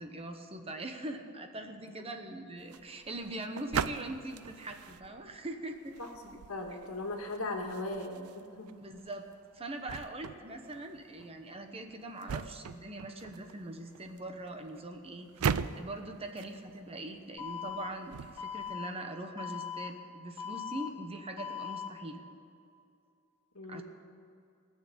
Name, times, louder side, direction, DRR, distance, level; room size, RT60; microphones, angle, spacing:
voice 1, 0.0-6.0 6.7-6.8 8.8-9.3 9.5-22.2 23.7-23.8, right 1 dB, 25° right, 5 dB, 1.0 m, -42 dB
sound 1, 2.6-18.8, right 6 dB, 75° right, 0.4 m, -41 dB
voice 2, 6.0-8.7 23.5-23.8, left 2 dB, 70° left, 3 dB, 1.8 m, -38 dB
Alarm, 17.4-17.9 18.4-18.9 19.4-19.9 20.4-20.9 21.4-21.9, left 7 dB, 35° left, 2.4 m, -39 dB
19.0 x 6.6 x 8.5 m, 2.6 s
head